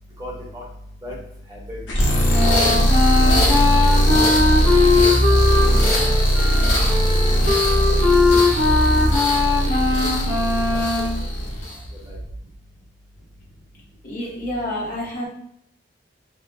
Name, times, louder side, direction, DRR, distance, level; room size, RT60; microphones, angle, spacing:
voice 1, 0.2-0.6 1.0-1.2 1.5-1.8 2.5-2.9 3.2-3.3 4.6-4.8 5.3-6.1 6.6-7.2 7.6-8.1 9.9-10.4 10.9-11.0 12.0-12.2, equal, 20° right, -5 dB, 0.9 m, -37 dB
sound 1, 1.9-11.9, equal, 80° left, 0.7 m, -19 dB
Wind instrument woodwind instrument, 2.3-11.2, left 3 dB, 50° right, 0.9 m, -20 dB
voice 2, 14.0-15.3, left 1 dB, 50° left, -5 dB, 0.9 m, -28 dB
3.1 x 2.0 x 2.5 m, 0.71 s
head